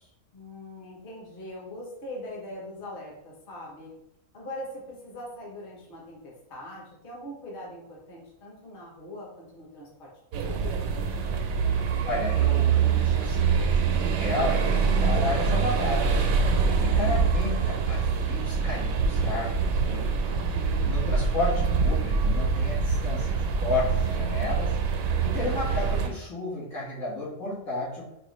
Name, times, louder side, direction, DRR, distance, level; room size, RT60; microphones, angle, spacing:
voice 1, 0.3-4.0 4.3-11.1 20.2-21.0, left 1 dB, 45° left, -3 dB, 1.0 m, -42 dB
sound 1, 10.3-26.1, right 5 dB, 85° right, 1.0 m, -25 dB
voice 2, 12.1-16.3 16.6-20.1 20.8-24.8 25.2-28.1, left 2 dB, 80° left, -8 dB, 2.1 m, -32 dB
4.7 x 2.4 x 3.1 m, 0.81 s
omnidirectional pair, 1.4 m